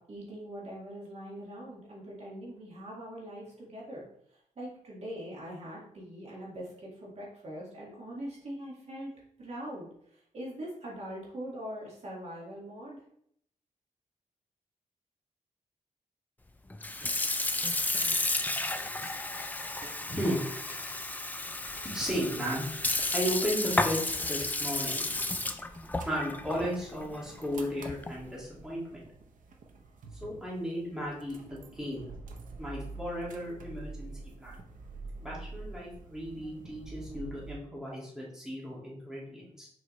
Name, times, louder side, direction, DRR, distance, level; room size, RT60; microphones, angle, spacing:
voice 1, 0.0-4.0 4.6-9.1 9.4-9.9 10.3-13.0, equal, 55° right, -4 dB, 1.8 m, -42 dB
Sink (filling or washing) / Fill (with liquid), 16.7-28.2, left 2 dB, 15° left, 0.4 m, -32 dB
sound 1, 17.0-21.1, right 2 dB, 20° right, 0.7 m, -50 dB
voice 2, 20.1-20.5 21.8-22.7 23.1-25.0 26.1-29.0 30.2-32.1 32.6-34.1 34.4-34.6 35.2-39.7, equal, 5° right, -6 dB, 2.1 m, -35 dB
sound 2, 21.4-37.6, right 3 dB, 85° right, 0.8 m, -48 dB
6.5 x 4.7 x 3.1 m, 0.69 s
wide cardioid pair, 125°, 13 cm